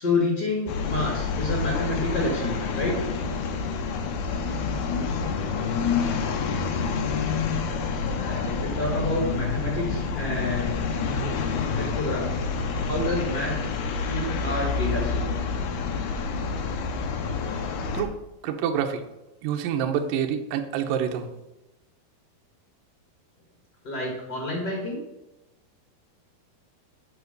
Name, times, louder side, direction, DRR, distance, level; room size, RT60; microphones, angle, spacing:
voice 1, 0.0-3.0 8.1-10.8 11.7-12.4 12.8-13.5 14.0-15.3 23.8-25.0, left 2 dB, 45° left, -2 dB, 1.3 m, -29 dB
sound 1, 0.7-18.0, left 5 dB, 75° left, 1.9 m, -28 dB
voice 2, 18.4-19.0 19.4-21.3, right 8 dB, 75° right, 6 dB, 2.2 m, -27 dB
7.8 x 4.8 x 6.5 m, 0.95 s
omnidirectional pair, 4.4 m